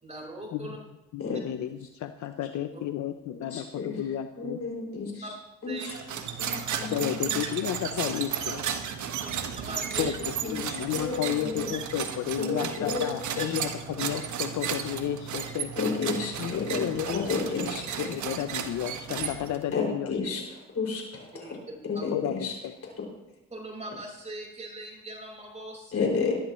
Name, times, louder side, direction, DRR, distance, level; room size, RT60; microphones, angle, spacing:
voice 1, 0.0-0.8 3.4-3.5 5.2-5.3 5.7-5.9 9.2-9.3 9.6-10.2 21.4-22.1 23.5-26.1, right 1 dB, 20° right, -1 dB, 5.0 m, -40 dB
voice 2, 1.1-4.6 6.9-8.6 10.0-15.7 16.4-17.3 17.6-17.7 18.0-20.1 22.1-22.7, left 11 dB, 70° left, 9 dB, 0.7 m, -32 dB
voice 3, 3.3-4.0 4.4-5.3 5.6-6.0 6.4-7.5 10.4-11.7 12.4-13.1 13.4-13.6 15.8-18.2 19.7-21.6 21.9-22.5 23.0-23.1 25.9-26.3, left 4 dB, 50° left, -1 dB, 5.8 m, -32 dB
sound 1, 5.8-19.7, right 8 dB, 75° right, 1.5 m, -34 dB
19.0 x 12.5 x 3.1 m, 0.97 s
cardioid pair, 90°, 30 cm